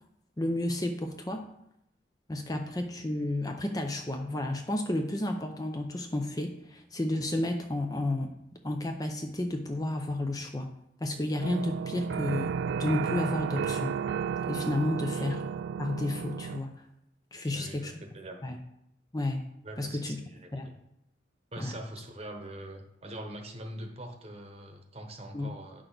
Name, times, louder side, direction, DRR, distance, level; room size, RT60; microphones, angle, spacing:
voice 1, 0.4-1.4 2.3-8.3 8.6-10.7 11.0-14.0 14.5-15.4 15.8-16.8 17.3-17.9 18.4-18.6 19.1-19.4 19.8-20.2 20.5-20.7 21.6-21.7 25.3-25.5, left 1 dB, 20° left, 4 dB, 0.6 m, -31 dB
sound 1, 11.4-16.6, right 7 dB, 70° right, 0.3 m, -33 dB
voice 2, 17.3-18.4 19.6-20.8 21.5-25.8, right 1 dB, 30° right, 4 dB, 1.0 m, -43 dB
9.0 x 6.3 x 3.9 m, 0.78 s
head